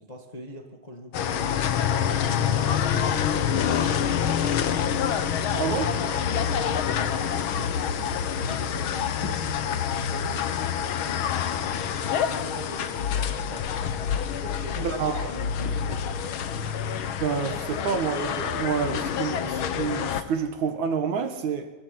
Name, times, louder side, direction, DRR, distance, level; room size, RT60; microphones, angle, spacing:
voice 1, 0.0-4.2 5.3-7.9 8.3-11.1 11.7-13.7 14.4-14.9 15.3-16.2, equal, 15° left, 1.5 m, -42 dB
sound 1, 1.1-20.2, left 8 dB, 80° left, 1.1 m, -27 dB
voice 2, 5.5-6.2 14.8-15.3 17.2-21.7, right 6 dB, 60° right, 2.8 m, -28 dB
25.0 x 15.0 x 9.3 m
omnidirectional pair, 4.0 m